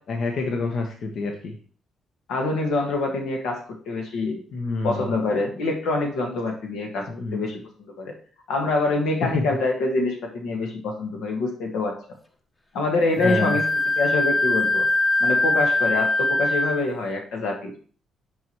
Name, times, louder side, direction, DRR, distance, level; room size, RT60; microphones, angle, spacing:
voice 1, 0.1-1.6 4.5-5.1 7.1-7.4 9.2-9.4 13.2-13.6, left 3 dB, 65° left, 3 dB, 1.0 m, -27 dB
voice 2, 2.3-4.4 4.8-7.6 8.0-8.1 8.5-11.9 12.7-13.7 14.0-14.8 15.2-17.7, left 2 dB, 85° left, 2 dB, 1.5 m, -25 dB
Wind instrument woodwind instrument, 13.2-16.9, left 2 dB, 25° left, 1.0 m, -22 dB
9.2 x 4.7 x 3.0 m, 0.42 s
cardioid pair, 90°, 0 cm